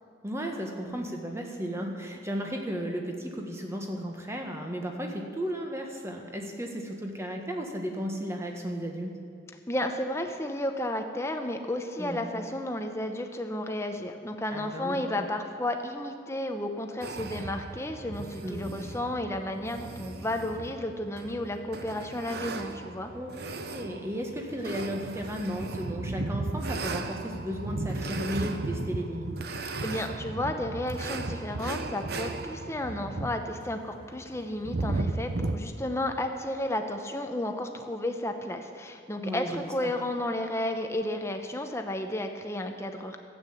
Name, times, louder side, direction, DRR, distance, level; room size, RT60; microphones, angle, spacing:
voice 1, 0.2-9.2 12.0-12.3 14.5-15.0 18.4-18.7 23.1-23.3 23.6-29.3 39.2-39.9, equal, 15° right, 2 dB, 1.4 m, -34 dB
voice 2, 9.7-23.1 29.6-43.2, left 1 dB, 15° left, 5 dB, 0.8 m, -32 dB
sound 1, 17.0-35.6, right 2 dB, 55° right, 0.7 m, -36 dB
13.0 x 8.8 x 7.2 m, 2.6 s
head